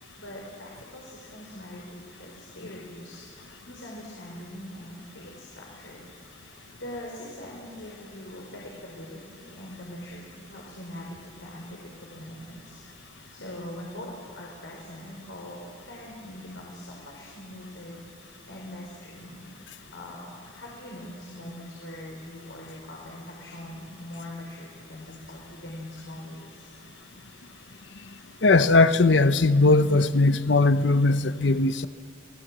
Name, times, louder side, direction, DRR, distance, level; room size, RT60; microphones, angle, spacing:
voice 1, 0.2-6.0 6.4-18.0 18.5-19.6 19.9-26.7, left 1 dB, 90° left, -2 dB, 4.6 m, -42 dB
voice 2, 28.4-31.9, left 3 dB, 70° left, 12 dB, 0.8 m, -19 dB
28.0 x 19.0 x 7.5 m, 2.5 s
head